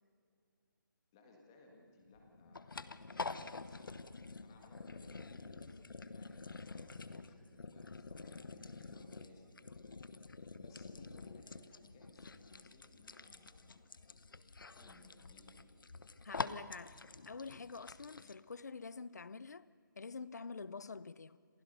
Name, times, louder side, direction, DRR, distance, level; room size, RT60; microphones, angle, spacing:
voice 1, 1.1-4.0 4.4-9.9 10.2-10.3 10.6-14.0 14.6-15.8, left 3 dB, 10° left, 1.7 m, -63 dB
sound 1, 2.1-18.3, left 4 dB, 75° left, 1.0 m, -48 dB
voice 2, 16.2-19.7 20.0-21.4, left 4 dB, 50° left, 0.6 m, -47 dB
27.5 x 15.5 x 6.8 m
hypercardioid pair, 180°, 11 cm